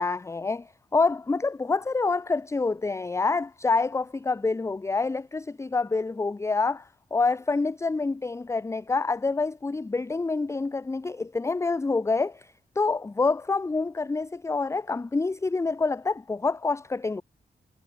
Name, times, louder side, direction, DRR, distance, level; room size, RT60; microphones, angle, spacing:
voice 1, 0.0-17.2, left 3 dB, 15° left, 0.5 m, -27 dB
wide cardioid pair, 155°, 17 cm